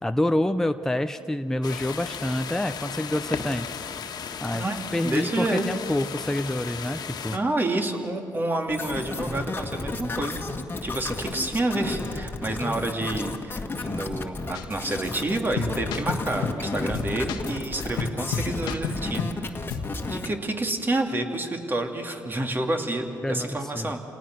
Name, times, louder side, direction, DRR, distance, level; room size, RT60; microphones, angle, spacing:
voice 1, 0.0-3.7 4.4-4.6 4.9-7.4 23.2-23.5 23.7-24.0, left 1 dB, 5° left, 8 dB, 0.7 m, -27 dB
sound 1, 1.6-7.4, left 7 dB, 60° left, 1.7 m, -35 dB
voice 2, 5.0-5.6 7.3-10.4 10.8-19.5 20.0-24.0, right 2 dB, 25° right, 4 dB, 2.7 m, -29 dB
sound 2, 8.7-20.3, left 3 dB, 25° left, 1.9 m, -33 dB
sound 3, 14.5-14.8 15.0-15.1 15.6-16.6 16.9-19.4 19.7-19.9, left 6 dB, 90° left, 1.4 m, -31 dB
28.5 x 18.5 x 6.2 m, 2.6 s
supercardioid pair, 75°, 8 cm